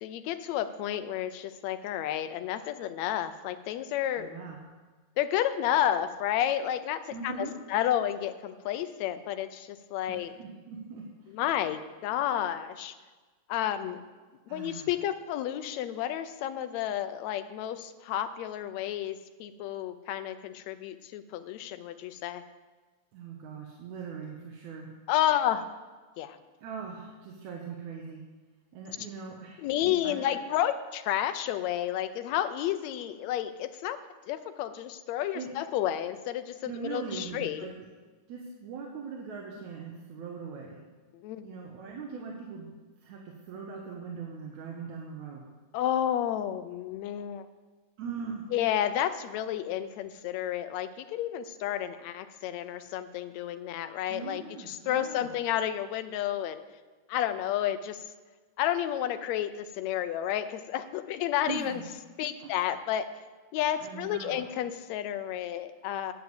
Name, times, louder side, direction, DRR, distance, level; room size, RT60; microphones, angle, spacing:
voice 1, 0.0-4.3 5.2-10.3 11.3-12.9 13.5-14.0 14.5-22.4 25.1-25.7 26.2-26.4 29.6-34.0 34.3-37.7 41.1-41.5 45.7-47.5 48.5-56.6 57.1-58.1 58.6-61.8 62.2-63.1 63.5-66.1, left 11 dB, 75° left, 10 dB, 1.9 m, -31 dB
voice 2, 4.2-4.6 7.1-7.6 10.1-11.4 14.5-14.9 23.1-24.9 26.6-28.2 28.7-30.4 35.3-35.5 36.6-37.7 38.3-40.8 41.4-42.8 43.0-45.5 48.0-48.4 54.1-55.3 61.5-61.8 62.4-62.5 63.8-64.5, right 5 dB, 80° right, -1 dB, 2.5 m, -40 dB
10.0 x 7.2 x 7.9 m, 1.3 s
omnidirectional pair, 3.4 m